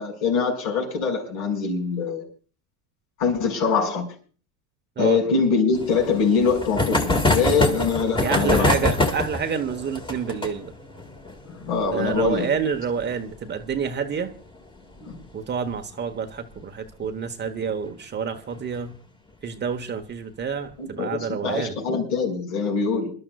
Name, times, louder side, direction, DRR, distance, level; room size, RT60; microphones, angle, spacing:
voice 1, 0.0-2.2 3.2-4.1 5.0-8.7 11.4-12.5 15.0-15.2 20.8-23.1, left 5 dB, 65° left, 2 dB, 6.1 m, -23 dB
sound 1, 5.7-15.0 15.2-15.3 15.5-15.6 15.9-16.0 17.4-17.7 18.4-18.8, left 2 dB, 10° left, 1.9 m, -26 dB
voice 2, 8.2-10.7 11.9-14.3 15.3-18.9 19.4-21.8, right 6 dB, 25° right, 7 dB, 1.1 m, -28 dB
27.5 x 12.0 x 2.4 m, 0.41 s
supercardioid pair, 110°, 44 cm